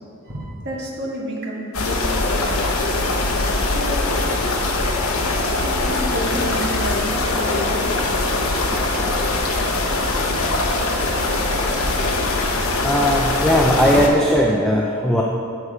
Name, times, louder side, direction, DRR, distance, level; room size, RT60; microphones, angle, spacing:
voice 1, 0.3-2.7 3.7-4.1 5.6-7.9, equal, 50° right, -4 dB, 1.8 m, -29 dB
sound 1, 1.7-14.1, left 2 dB, 80° left, 1.0 m, -22 dB
voice 2, 12.8-15.2, equal, 5° left, -2 dB, 0.5 m, -18 dB
8.1 x 7.3 x 4.9 m, 2.5 s
head